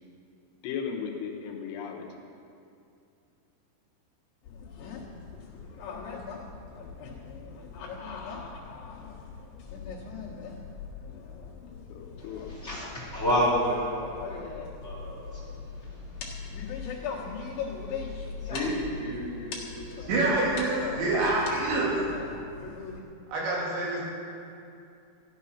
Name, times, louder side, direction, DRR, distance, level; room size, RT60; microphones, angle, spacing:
voice 1, 0.6-2.1 11.9-12.5, left 7 dB, 75° left, 1 dB, 3.2 m, -36 dB
sound 1, 4.4-23.0, left 5 dB, 60° left, 3.2 m, -40 dB
voice 2, 12.2-14.4 14.8-16.3 17.1-17.2 18.4-20.8, equal, 20° left, -6 dB, 2.9 m, -31 dB
voice 3, 20.1-21.9 23.3-24.0, right 2 dB, 85° right, -5 dB, 5.1 m, -26 dB
15.0 x 10.0 x 5.8 m, 2.6 s
omnidirectional pair, 5.0 m